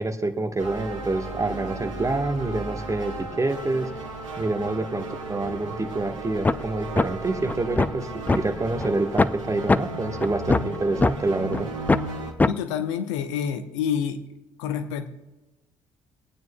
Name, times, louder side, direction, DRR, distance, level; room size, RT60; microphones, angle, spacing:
voice 1, 0.0-3.9 4.4-11.7, right 2 dB, 20° right, 7 dB, 1.3 m, -27 dB
sound 1, 0.6-12.3, right 2 dB, 80° right, 1.2 m, -35 dB
sound 2, 6.5-6.6 7.0-7.1 7.5-8.4 8.8-8.9 9.2-9.4 9.7-9.8 10.2-11.1 11.5-11.6 11.9-12.1 12.4-12.5, left 3 dB, 10° left, 0.3 m, -20 dB
voice 2, 12.5-14.2 14.6-15.1, left 8 dB, 70° left, 9 dB, 0.8 m, -28 dB
26.5 x 9.3 x 2.2 m, 1.1 s
figure-of-eight pair, 45°, 16 cm